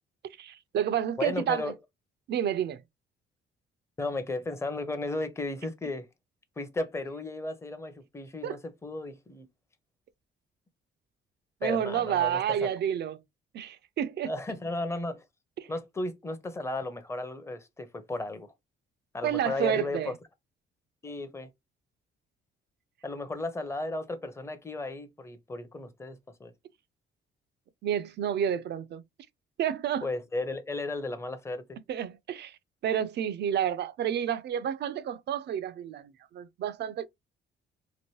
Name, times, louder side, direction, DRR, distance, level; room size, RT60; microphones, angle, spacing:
voice 1, 0.4-1.7 2.3-2.8 8.4-8.6 11.6-13.2 13.5-14.3 15.6-15.7 19.2-20.1 27.8-29.0 29.6-30.1 31.9-32.6 32.8-37.1, right 9 dB, 60° right, 0.4 m, -30 dB
voice 2, 1.2-1.8 4.0-6.1 6.6-9.5 11.6-12.4 14.2-15.2 15.7-18.5 19.1-20.1 21.0-21.5 23.0-26.5 30.0-31.6, left 2 dB, 15° left, 0.6 m, -34 dB
2.9 x 2.6 x 3.0 m
cardioid pair, 90°, 20 cm